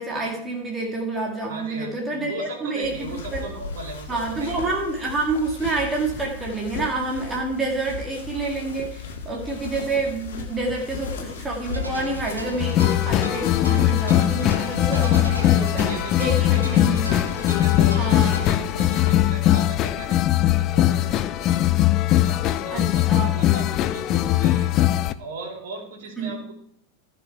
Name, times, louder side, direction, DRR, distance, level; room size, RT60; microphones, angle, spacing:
voice 1, 0.0-3.4 4.1-15.9 16.2-17.2 18.0-18.3 22.7-23.4 26.2-26.5, right 3 dB, 15° right, -1 dB, 2.0 m, -28 dB
voice 2, 1.5-4.6 14.9-15.3 15.7-16.7 17.4-21.7 22.2-24.7 25.2-26.5, right 3 dB, 60° right, -1 dB, 3.7 m, -38 dB
sound 1, 2.8-19.3, left 5 dB, 55° left, 1.9 m, -36 dB
sound 2, 11.7-18.5, right 1 dB, 85° right, 2.0 m, -36 dB
sound 3, 12.6-25.1, left 13 dB, 35° left, 0.5 m, -20 dB
14.5 x 5.7 x 4.7 m, 0.68 s
figure-of-eight pair, 90°, 0 cm